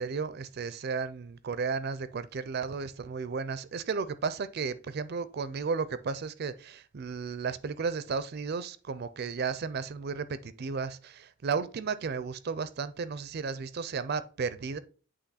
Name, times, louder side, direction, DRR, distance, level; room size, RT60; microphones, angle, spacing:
voice 1, 0.0-14.8, right 5 dB, 55° right, 0.4 m, -34 dB
8.2 x 3.1 x 4.0 m
head